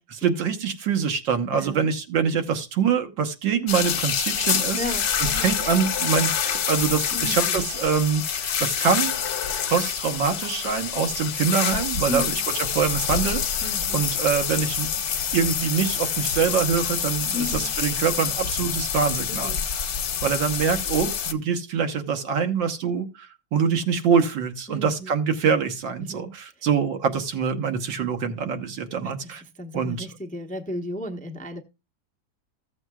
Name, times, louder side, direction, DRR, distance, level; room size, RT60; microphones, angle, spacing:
voice 1, 0.1-4.8 5.2-9.1 9.7-12.4 12.7-14.9 15.3-19.8 20.2-29.4 29.7-30.1, right 6 dB, 75° right, 1.9 m, -25 dB
voice 2, 1.5-1.9 4.8-5.5 7.1-7.6 12.1-12.4 13.6-14.0 17.3-17.7 19.3-19.6 24.7-25.1 26.0-26.3 29.0-31.6, left 1 dB, 5° left, 0.6 m, -34 dB
sound 1, 3.7-21.3, left 8 dB, 60° left, 1.4 m, -27 dB
15.0 x 7.9 x 2.3 m
omnidirectional pair, 2.0 m